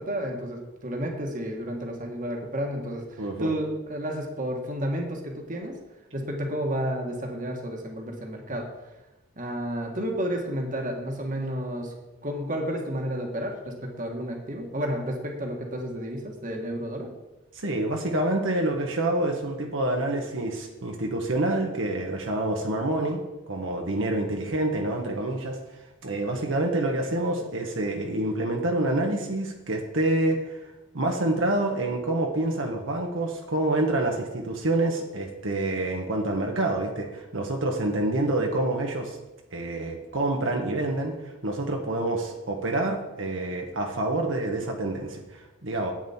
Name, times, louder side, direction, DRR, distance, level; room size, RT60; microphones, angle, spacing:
voice 1, 0.0-5.8 6.1-8.7 9.4-11.9 12.2-17.1, equal, 40° right, 2 dB, 1.6 m, -31 dB
voice 2, 3.2-3.5 17.5-25.6 26.0-30.6 30.9-39.2 39.5-41.1 41.4-45.9, right 2 dB, 75° right, 2 dB, 1.3 m, -27 dB
10.5 x 8.9 x 4.3 m, 1.0 s
head